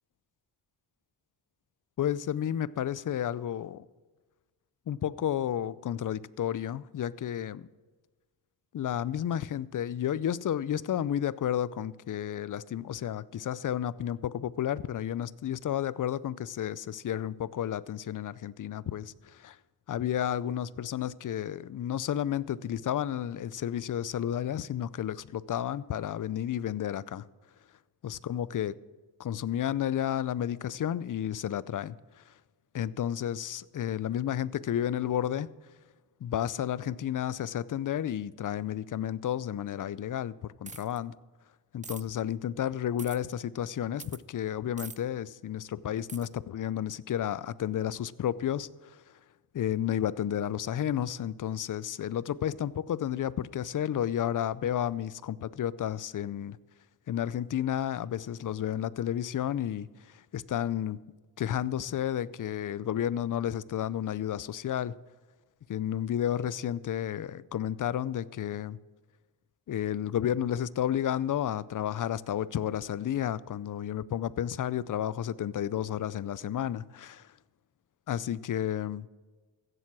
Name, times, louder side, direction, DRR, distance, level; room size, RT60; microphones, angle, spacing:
voice 1, 2.0-3.8 4.9-7.7 8.7-19.6 19.9-27.2 28.0-28.8 29.2-32.0 32.7-35.5 36.2-41.2 41.7-49.0 49.5-56.6 57.1-61.0 61.4-64.9 65.7-68.8 69.7-77.2 78.1-79.1, left 10 dB, 45° left, 0.5 m, -32 dB
sound 1, 40.7-41.0 41.8-42.0 43.0-43.2 44.0-44.2 44.8-45.0 46.1-46.3, right 4 dB, 15° right, 0.5 m, -43 dB
15.5 x 7.6 x 6.1 m
cardioid pair, 70°, 44 cm